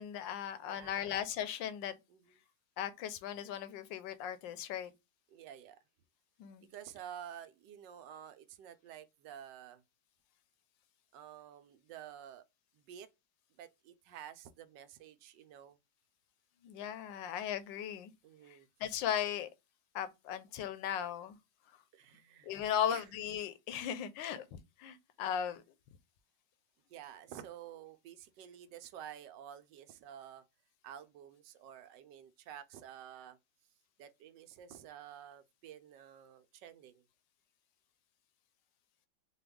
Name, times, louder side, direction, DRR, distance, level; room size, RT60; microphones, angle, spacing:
voice 1, 0.0-2.0 2.8-4.9 6.4-6.7 16.6-18.1 18.8-19.5 19.9-21.4 22.4-25.6, left 9 dB, 85° left, 1.3 m, -37 dB
voice 2, 0.6-1.1 2.1-2.4 5.3-5.8 6.7-9.8 11.1-12.4 12.7-13.1 13.6-15.8 18.2-18.7 21.9-22.5 22.8-23.1 26.9-30.4 30.8-33.4 34.0-37.0, right 10 dB, 80° right, 1.2 m, -50 dB
4.3 x 2.3 x 3.4 m
omnidirectional pair, 2.0 m